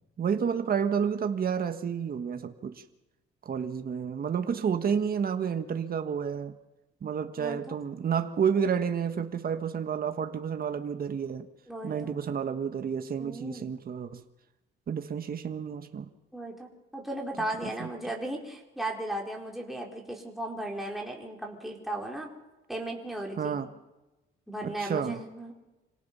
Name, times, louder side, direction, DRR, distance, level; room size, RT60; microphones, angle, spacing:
voice 1, 0.2-2.8 3.4-6.6 7.0-11.5 11.8-14.2 14.9-16.1 17.8-17.9 23.4-23.7 24.6-25.2, right 7 dB, 50° right, 8 dB, 1.5 m, -30 dB
voice 2, 7.4-7.8 11.7-12.1 13.2-13.7 16.3-22.3 22.7-23.6 24.5-25.5, right 1 dB, ahead, -1 dB, 4.7 m, -36 dB
27.0 x 17.5 x 5.7 m, 1.0 s
cardioid pair, 90°, 20 cm